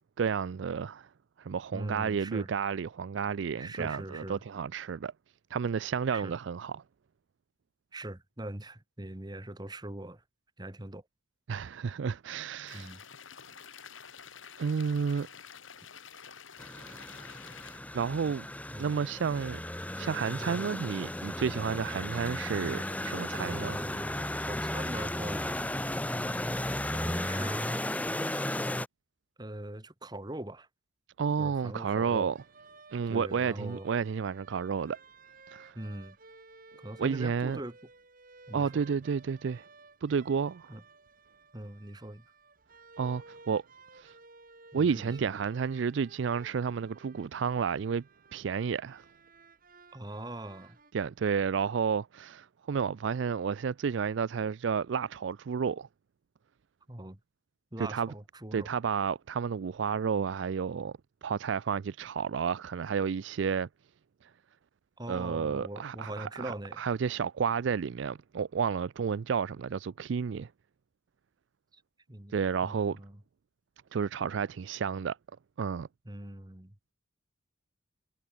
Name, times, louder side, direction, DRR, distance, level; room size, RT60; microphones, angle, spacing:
voice 1, 0.2-1.1 1.4-5.1 5.5-6.8 11.5-12.9 14.6-15.3 17.9-18.5 18.8-19.6 20.0-23.8 31.2-32.4 32.9-35.0 35.5-35.8 37.0-37.6 38.5-39.6 40.0-40.7 43.0-43.6 43.9-44.1 44.7-48.0 48.3-49.0 50.9-55.9 57.8-58.1 58.5-63.7 65.1-70.5 72.3-73.0 73.9-75.2 75.6-75.9, right 6 dB, 60° right, 0.4 m, -31 dB
voice 2, 1.7-2.5 3.5-4.4 6.1-6.3 7.9-10.2 10.6-11.0 12.7-13.0 18.7-18.9 23.4-25.9 26.8-27.8 29.4-30.7 31.4-32.3 33.1-33.9 35.7-36.2 36.8-37.8 38.5-38.8 40.7-40.8 41.5-42.2 44.7-45.4 49.9-50.8 56.9-57.2 57.7-58.7 65.0-66.8 71.7-71.8 72.1-72.3 72.6-73.2 76.0-76.7, right 1 dB, 20° right, 1.6 m, -42 dB
sound 1, 12.7-17.8, left 7 dB, 75° left, 2.8 m, -49 dB
sound 2, 16.6-28.9, left 1 dB, 5° left, 1.1 m, -35 dB
sound 3, 32.3-50.9, right 3 dB, 45° right, 5.8 m, -56 dB
head